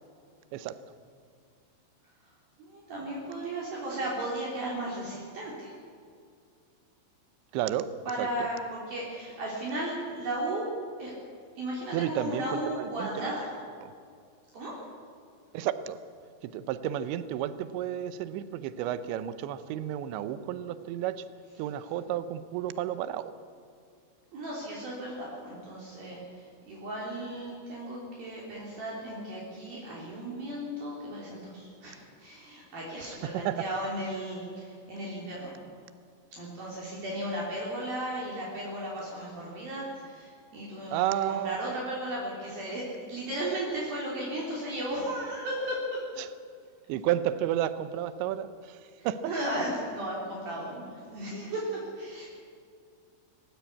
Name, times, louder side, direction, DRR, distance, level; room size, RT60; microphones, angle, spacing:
voice 1, 2.6-5.7 8.1-10.7 11.0-11.1 11.6-13.5 14.5-14.7 24.3-35.5 36.3-46.0 49.0-52.3, right 1 dB, 55° right, -4 dB, 4.8 m, -35 dB
voice 2, 7.5-7.9 8.2-8.5 11.9-13.3 15.5-16.0 16.4-21.2 21.6-23.3 33.3-33.7 40.9-41.8 46.2-46.3 46.9-49.2, right 11 dB, 80° right, 13 dB, 3.0 m, -32 dB
20.5 x 16.5 x 8.3 m, 2.3 s
omnidirectional pair, 5.4 m